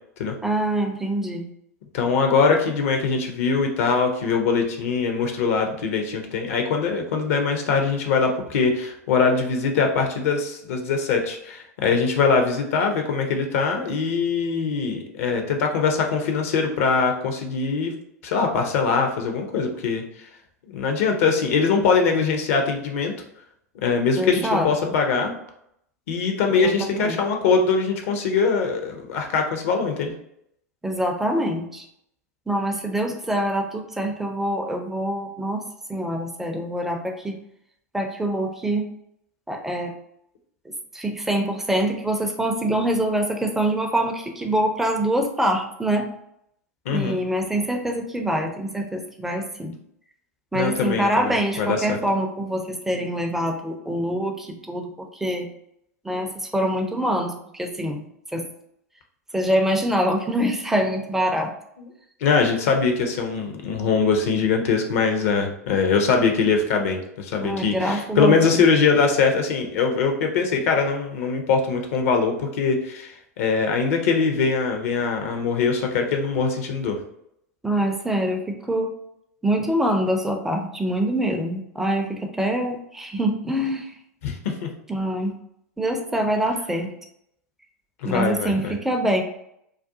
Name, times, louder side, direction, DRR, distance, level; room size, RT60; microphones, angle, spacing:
voice 1, 0.4-1.5 24.2-24.7 26.5-27.2 30.8-31.9 32.5-35.6 35.9-37.4 37.9-38.9 39.5-39.9 40.9-46.1 46.9-49.7 50.5-55.5 56.0-58.5 59.3-61.5 67.4-68.6 77.6-78.9 79.4-83.9 84.9-85.4 85.8-86.9 88.0-89.2, right 1 dB, 5° right, 3 dB, 0.4 m, -25 dB
voice 2, 1.9-17.9 18.2-20.3 20.7-23.1 23.8-25.3 26.1-30.1 46.9-47.2 50.5-52.0 61.8-61.9 62.2-77.0 84.2-84.7 88.0-88.8, left 5 dB, 60° left, 4 dB, 0.5 m, -22 dB
2.4 x 2.2 x 2.6 m, 0.75 s
figure-of-eight pair, 90°, 9 cm